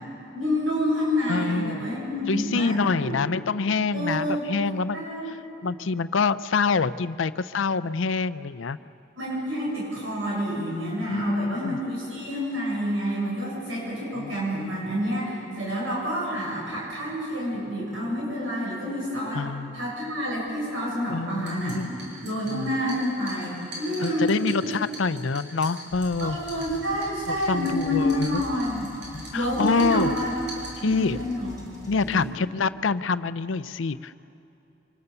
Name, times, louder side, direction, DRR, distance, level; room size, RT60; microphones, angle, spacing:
voice 1, 0.3-3.2 3.9-4.4 4.9-5.3 9.2-19.4 19.7-22.0 22.2-24.3 24.6-24.7 26.2-28.9 29.3-30.3 30.8-32.3, equal, 85° right, -5 dB, 7.8 m, -28 dB
voice 2, 1.3-1.9 2.3-5.4 5.6-8.8 11.1-11.8 14.2-14.3 19.3-19.8 21.1-21.9 22.5-22.7 24.0-26.4 27.3-28.4 29.1-30.1 30.8-31.2 31.9-34.2, left 4 dB, 80° left, 14 dB, 0.6 m, -26 dB
sound 1, 21.3-31.3, right 1 dB, 60° right, 7.0 m, -44 dB
sound 2, 25.9-32.3, equal, 15° right, 4.7 m, -44 dB
27.5 x 25.0 x 6.9 m, 2.8 s
head